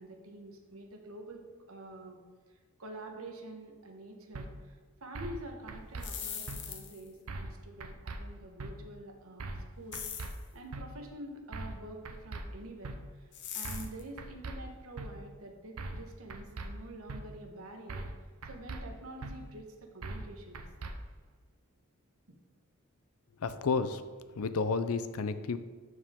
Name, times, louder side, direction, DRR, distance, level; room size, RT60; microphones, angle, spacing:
voice 1, 0.0-2.2 2.8-10.1 10.5-18.1 18.4-20.6 22.3-22.4, right 1 dB, 70° right, 3 dB, 1.2 m, -47 dB
sound 1, 4.3-4.5 5.2-5.4 5.7-6.1 6.5-6.6 7.3-7.5 7.8-8.2 8.6-8.7 9.4-9.7 9.9-10.3 10.7-10.8 11.5-11.8 12.1-12.4 12.8-13.0 13.6-13.9 14.2-14.6 15.0-15.1 15.8-16.0 16.3-16.7 17.1-17.2 17.9-18.2 18.4-18.8 19.2-19.3 20.0-20.3 20.5-20.9, right 2 dB, 85° right, 0.8 m, -40 dB
sound 2, 5.9-7.1 9.9-10.4 13.3-14.0, left 8 dB, 55° left, 1.0 m, -41 dB
voice 2, 23.4-24.0 24.4-25.6, left 4 dB, 80° left, 12 dB, 0.5 m, -31 dB
12.5 x 4.8 x 3.7 m, 1.4 s
head